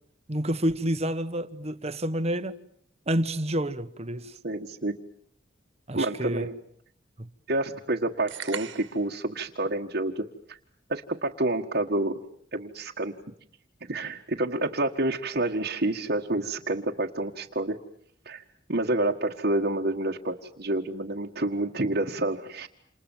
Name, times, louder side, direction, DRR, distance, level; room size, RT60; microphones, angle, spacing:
voice 1, 0.3-2.5 3.1-4.4 5.9-6.5 7.2-7.3, right 1 dB, 35° right, 1.4 m, -29 dB
voice 2, 4.4-5.0 5.9-6.6 7.5-10.6 10.9-12.2 12.5-13.2 13.9-17.8 18.3-18.4 18.7-22.7, right 2 dB, 55° right, 1.7 m, -28 dB
sound 1, 8.3-9.1, right 8 dB, 80° right, 2.0 m, -38 dB
28.5 x 28.5 x 7.3 m
head